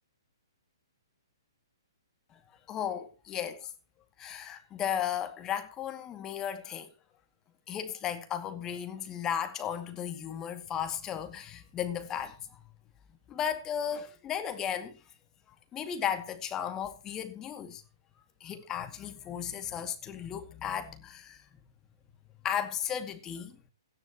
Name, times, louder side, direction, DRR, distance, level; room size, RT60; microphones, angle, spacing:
voice 1, 2.7-3.7 4.2-6.9 7.7-12.6 13.3-14.9 15.7-17.8 18.4-21.4 22.4-23.6, left 9 dB, 20° left, 2.3 m, -35 dB
17.5 x 12.0 x 3.0 m
figure-of-eight pair, 125°, 2 cm